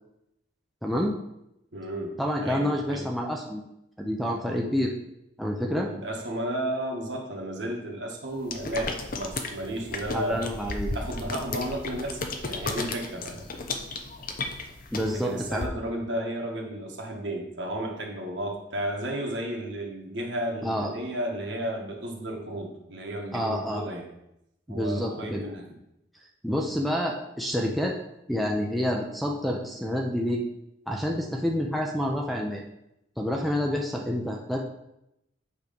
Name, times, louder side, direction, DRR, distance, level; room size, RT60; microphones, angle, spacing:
voice 1, 0.8-1.1 2.2-3.6 4.0-4.9 5.4-5.9 10.1-10.9 14.9-15.7 20.6-20.9 23.3-23.8 24.7-25.4 26.4-28.0 28.3-30.4 30.9-32.7 33.2-34.6, equal, ahead, -1 dB, 0.5 m, -28 dB
voice 2, 1.7-2.2 2.4-3.1 5.8-10.5 10.9-13.5 15.1-24.1 24.7-25.6 26.5-26.6, right 1 dB, 70° right, 0 dB, 1.4 m, -33 dB
sound 1, 8.5-15.7, left 3 dB, 45° left, 0.7 m, -34 dB
8.3 x 3.2 x 5.2 m, 0.84 s
head